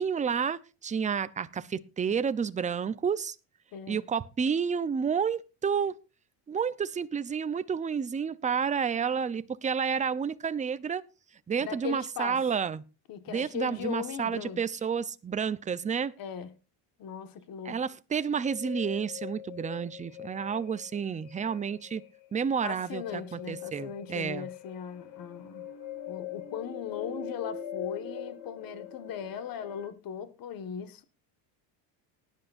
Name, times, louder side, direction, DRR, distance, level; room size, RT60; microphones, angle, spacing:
voice 1, 0.0-3.4 3.9-5.9 6.5-11.0 11.5-12.8 13.3-16.1 17.6-22.0 22.3-24.5, right 6 dB, 15° right, 0.6 m, -30 dB
voice 2, 3.7-4.0 11.6-12.4 13.1-14.6 16.2-16.5 17.0-17.8 22.6-25.7 26.1-31.0, left 8 dB, 45° left, 1.7 m, -38 dB
sound 1, 18.4-29.9, left 9 dB, 65° left, 4.5 m, -42 dB
19.0 x 10.0 x 2.6 m
supercardioid pair, 115°, 47 cm